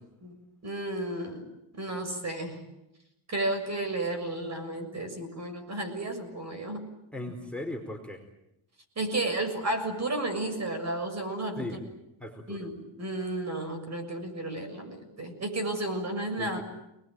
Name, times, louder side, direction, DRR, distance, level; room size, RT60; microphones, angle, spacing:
voice 1, 0.6-1.4 1.7-2.6 3.3-6.9 9.0-11.7 12.5-16.6, right 2 dB, 35° right, 7 dB, 7.1 m, -32 dB
voice 2, 7.1-8.2 11.6-11.8 12.2-12.7 16.4-16.6, left 1 dB, ahead, 5 dB, 4.6 m, -37 dB
29.5 x 21.0 x 9.2 m, 0.88 s
cardioid pair, 105°, 48 cm